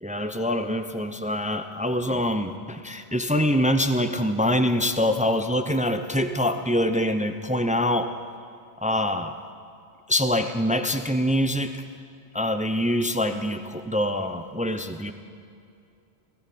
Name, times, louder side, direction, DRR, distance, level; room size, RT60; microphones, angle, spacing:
voice 1, 0.0-8.1 8.8-9.4 10.1-11.8 12.3-15.1, left 1 dB, 10° right, 8 dB, 0.4 m, -24 dB
19.5 x 16.0 x 4.2 m, 2.5 s
omnidirectional pair, 1.2 m